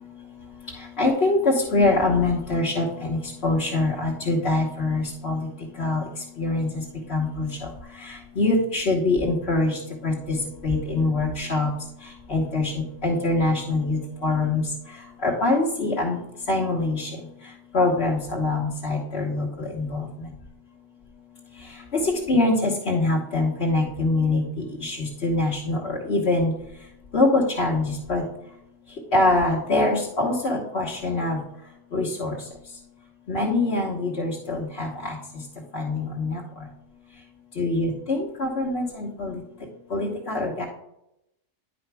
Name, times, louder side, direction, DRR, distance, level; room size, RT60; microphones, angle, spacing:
voice 1, 0.8-5.5 5.8-6.1 6.4-6.8 7.1-7.5 8.0-10.4 10.6-11.7 12.3-14.6 15.2-16.2 16.5-17.2 17.7-20.3 22.0-24.4 24.8-26.5 27.1-28.2 29.1-31.4 31.9-32.4 33.3-35.2 35.7-36.4 37.6-39.4 39.9-40.6, left 2 dB, 60° left, -4 dB, 1.5 m, -24 dB
10.0 x 5.1 x 3.4 m, 0.84 s
omnidirectional pair, 1.3 m